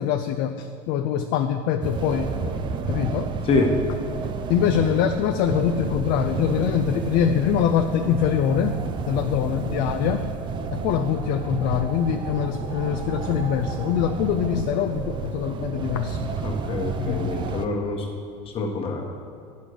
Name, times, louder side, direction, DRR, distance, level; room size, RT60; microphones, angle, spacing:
voice 1, 0.0-3.4 4.5-10.3 10.7-16.3 17.0-17.3, left 9 dB, 50° left, 6 dB, 0.5 m, -24 dB
sound 1, 1.8-17.7, right 5 dB, 25° right, 0.5 m, -31 dB
voice 2, 16.4-18.1 18.5-19.0, left 3 dB, 30° left, 1 dB, 1.3 m, -25 dB
9.8 x 5.3 x 6.5 m, 2.2 s
supercardioid pair, 140°, 18 cm